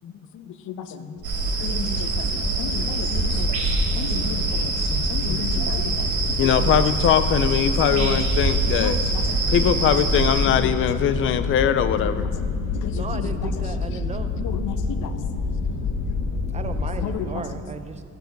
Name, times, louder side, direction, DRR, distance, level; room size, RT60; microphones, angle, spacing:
voice 1, 0.0-1.3 2.2-2.7 3.3-3.5 4.2-5.8 6.4-9.0 9.5-12.3 12.9-13.0 13.9-14.0, left 9 dB, 45° left, 12 dB, 0.4 m, -23 dB
voice 2, 0.7-1.1 1.6-3.6 4.0-4.7 5.1-6.1 6.4-6.7 7.9-8.3 8.8-9.7 10.4-10.7 11.7-13.7 14.4-15.2 17.0-17.6, left 7 dB, 85° left, 9 dB, 0.9 m, -34 dB
sound 1, 1.2-17.1, left 4 dB, 60° left, 1.1 m, -29 dB
sound 2, 1.2-10.5, right 3 dB, 80° right, 2.9 m, -24 dB
voice 3, 12.9-14.3 16.5-18.0, right 4 dB, 25° right, 9 dB, 0.4 m, -35 dB
14.5 x 9.1 x 5.2 m, 2.4 s
cardioid pair, 175°, 30 cm